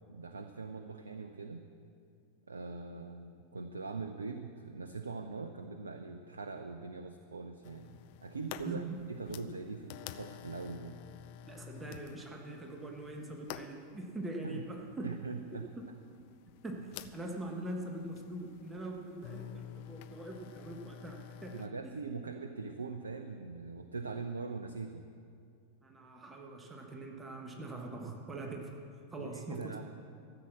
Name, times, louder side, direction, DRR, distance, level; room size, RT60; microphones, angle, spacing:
voice 1, 0.1-1.6 2.5-8.8 9.1-11.0 14.4-14.6 15.0-15.7 21.5-25.0 29.2-29.8, right 4 dB, 75° right, 7 dB, 0.6 m, -42 dB
sound 1, 7.6-21.7, left 11 dB, 45° left, 0.5 m, -50 dB
voice 2, 8.5-9.0 11.5-15.1 15.5-15.9 16.6-21.7 25.8-28.8 29.1-29.8, right 2 dB, 15° right, 1 dB, 1.3 m, -43 dB
14.0 x 7.9 x 7.4 m, 2.4 s
figure-of-eight pair, 90°, 0 cm